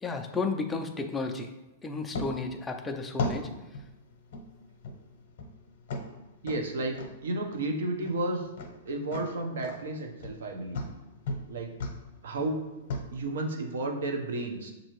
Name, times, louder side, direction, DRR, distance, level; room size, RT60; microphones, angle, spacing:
voice 1, 0.0-1.5 1.8-3.5, left 4 dB, 10° left, 4 dB, 0.3 m, -32 dB
sound 1, 2.1-13.0, left 2 dB, 60° left, 0.7 m, -39 dB
voice 2, 6.4-7.0 7.2-8.5 8.9-10.8 11.5-11.7 12.2-12.6 13.1-14.7, right 2 dB, 80° right, 3 dB, 0.7 m, -32 dB
6.5 x 2.6 x 3.0 m, 1.1 s
hypercardioid pair, 160°, 0 cm